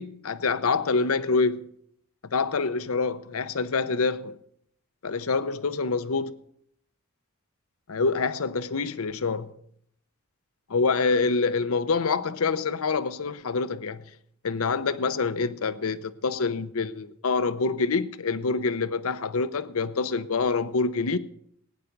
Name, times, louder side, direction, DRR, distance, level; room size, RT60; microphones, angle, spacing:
voice 1, 0.0-1.6 2.3-4.4 5.0-6.3 7.9-9.5 10.7-14.0 14.4-21.2, left 4 dB, 75° left, 0.7 m, -26 dB
16.5 x 9.8 x 5.2 m
head